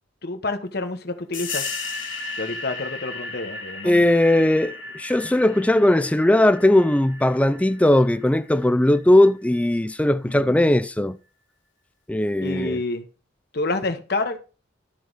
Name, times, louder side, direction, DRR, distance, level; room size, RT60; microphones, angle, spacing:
voice 1, 0.2-1.7 2.4-4.0 10.3-10.6 12.4-13.1 13.5-14.4, left 2 dB, 55° left, 1.2 m, -28 dB
sound 1, 1.3-9.6, left 3 dB, 75° left, 1.9 m, -35 dB
voice 2, 3.8-11.2 12.1-12.8, left 1 dB, 5° left, 0.4 m, -18 dB
12.0 x 4.7 x 4.0 m
head